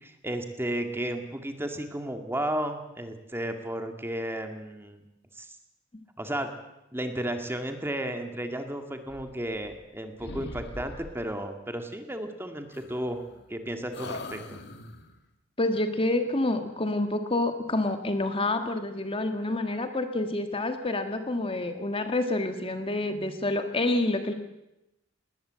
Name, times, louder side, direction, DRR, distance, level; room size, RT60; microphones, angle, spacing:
voice 1, 0.0-5.0 5.3-5.5 6.2-6.5 6.9-13.2 13.5-14.6, right 1 dB, 10° right, 6 dB, 1.9 m, -33 dB
sound 1, 9.0-9.9 10.2-11.4 12.7-13.6 13.9-15.2, left 2 dB, 60° left, 1.9 m, -42 dB
voice 2, 15.6-24.3, left 2 dB, 30° left, 7 dB, 1.6 m, -28 dB
20.0 x 19.5 x 7.5 m, 0.90 s
head